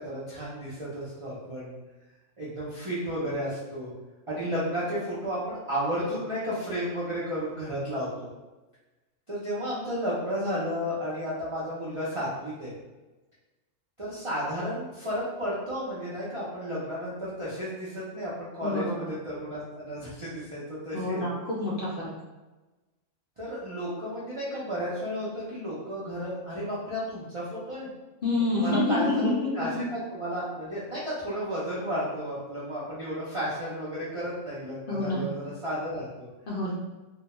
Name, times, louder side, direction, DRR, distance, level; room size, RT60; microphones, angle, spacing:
voice 1, 0.0-1.7 2.4-3.9 4.3-8.3 9.3-12.7 14.0-21.3 23.4-27.9 28.5-36.3, equal, 50° right, -9 dB, 0.4 m, -33 dB
voice 2, 18.6-19.1 20.9-22.1 28.2-29.9 34.9-35.3 36.5-36.7, left 2 dB, 60° left, -6 dB, 0.6 m, -28 dB
2.2 x 2.2 x 2.9 m, 1.1 s
omnidirectional pair, 1.3 m